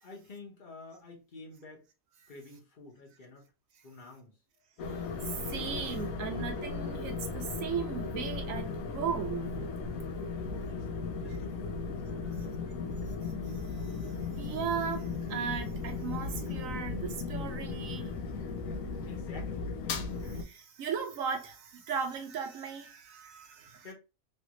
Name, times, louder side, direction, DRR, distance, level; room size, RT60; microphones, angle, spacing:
voice 1, 0.0-1.9 2.3-3.4 3.8-4.4 10.3-13.0 19.0-19.7 23.8-23.9, left 3 dB, 40° left, 1.0 m, -50 dB
sound 1, 4.8-20.4, left 4 dB, 80° left, 1.0 m, -36 dB
voice 2, 5.2-9.6 14.4-18.1 20.3-23.9, right 7 dB, 75° right, 1.1 m, -37 dB
3.2 x 2.5 x 2.9 m
omnidirectional pair, 1.4 m